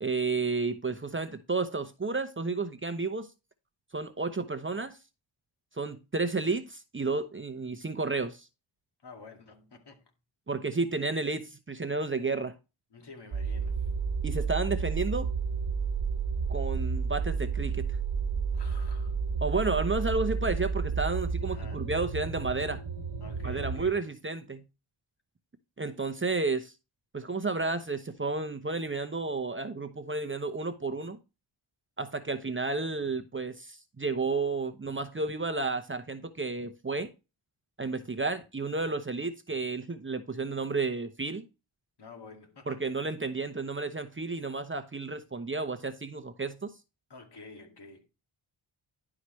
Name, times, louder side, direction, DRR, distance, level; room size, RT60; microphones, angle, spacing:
voice 1, 0.0-3.3 3.9-5.0 5.7-8.5 10.5-12.5 14.2-15.3 16.5-17.9 19.4-22.8 23.4-24.6 25.8-26.7 27.1-31.2 32.0-37.1 37.8-41.4 42.7-46.7, right 3 dB, 25° right, 0.9 m, -32 dB
voice 2, 9.0-10.0 12.9-13.9 18.5-19.2 21.4-21.9 23.2-24.0 42.0-43.0 47.1-48.1, left 4 dB, 55° left, 2.3 m, -49 dB
sound 1, 13.3-23.9, right 5 dB, 80° right, 1.2 m, -31 dB
11.0 x 4.9 x 3.2 m
cardioid pair, 70°, 49 cm